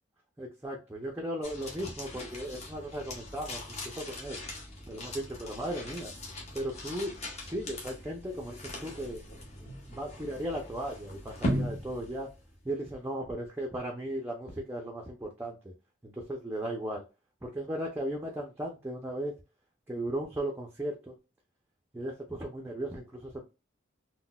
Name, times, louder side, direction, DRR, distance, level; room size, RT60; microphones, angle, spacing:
voice 1, 0.4-4.4 4.9-6.1 6.5-9.2 9.6-12.3 12.6-15.7 16.0-17.0 17.4-19.3 19.9-21.1 21.9-23.4, right 1 dB, 10° right, 0.4 m, -36 dB
sound 1, 1.4-12.8, equal, 35° left, 0.8 m, -39 dB
3.9 x 2.1 x 2.2 m
head